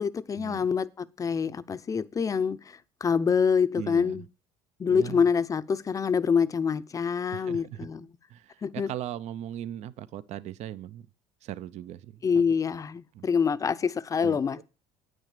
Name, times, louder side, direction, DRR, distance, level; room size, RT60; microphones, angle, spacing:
voice 1, 0.0-4.3 4.8-8.1 8.6-8.9 12.2-14.6, left 6 dB, 25° left, 0.6 m, -26 dB
voice 2, 3.7-4.2 4.9-5.2 7.3-7.9 8.3-11.1 11.4-12.4 13.1-13.2 14.2-14.6, right 11 dB, 55° right, 0.6 m, -39 dB
9.4 x 6.3 x 6.7 m
cardioid pair, 110°, 13 cm